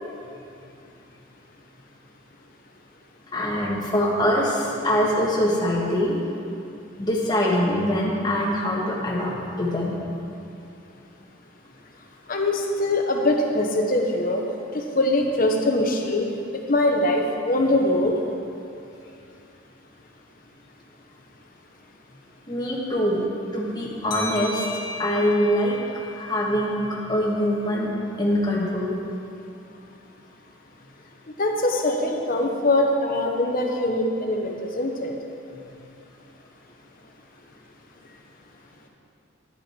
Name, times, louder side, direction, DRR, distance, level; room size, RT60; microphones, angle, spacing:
voice 1, 3.3-6.2 7.0-10.0 22.5-23.3 23.5-25.8 26.1-27.9 28.2-28.9, equal, 20° left, -3 dB, 1.4 m, -23 dB
voice 2, 12.3-14.4 14.7-16.3 16.7-18.1 31.4-35.1, left 1 dB, 45° left, 2 dB, 1.0 m, -22 dB
sound 1, 24.1-27.4, left 3 dB, 75° left, 1.3 m, -37 dB
9.9 x 9.0 x 4.4 m, 2.6 s
head